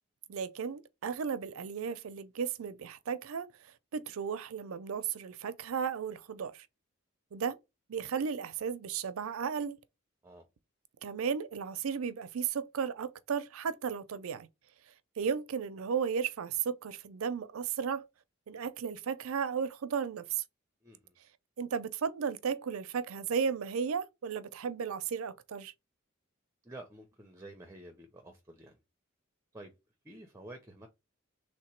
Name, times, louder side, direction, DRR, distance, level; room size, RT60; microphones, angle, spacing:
voice 1, 0.3-3.5 3.9-6.7 7.3-7.6 7.9-9.8 11.0-14.5 15.2-18.0 18.5-20.4 21.6-25.7, right 6 dB, 80° right, 0.5 m, -34 dB
voice 2, 20.8-21.1 26.6-28.8 29.5-29.7 30.0-30.9, right 1 dB, 15° right, 0.5 m, -50 dB
3.4 x 2.9 x 4.4 m
head